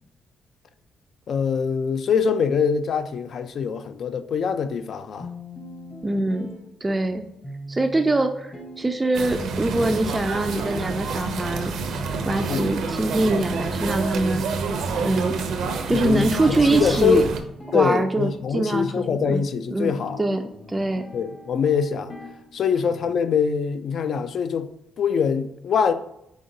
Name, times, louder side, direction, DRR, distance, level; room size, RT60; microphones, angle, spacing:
voice 1, 1.3-5.3 12.5-12.7 15.9-17.3 17.7-20.2 21.1-22.1 22.5-24.7 25.0-25.9, left 6 dB, 60° left, 0.3 m, -23 dB
sound 1, 5.2-23.2, equal, 30° left, 0.9 m, -41 dB
voice 2, 6.0-6.5 6.8-7.2 7.7-11.7 12.2-14.4 15.0-15.4 15.9-17.2 17.7-18.9 19.2-19.4 19.7-20.4 20.7-21.0, right 2 dB, 20° right, 0.3 m, -23 dB
sound 2, 9.1-17.4, right 4 dB, 75° right, 0.6 m, -28 dB
4.9 x 3.8 x 2.7 m
cardioid pair, 90°, 0 cm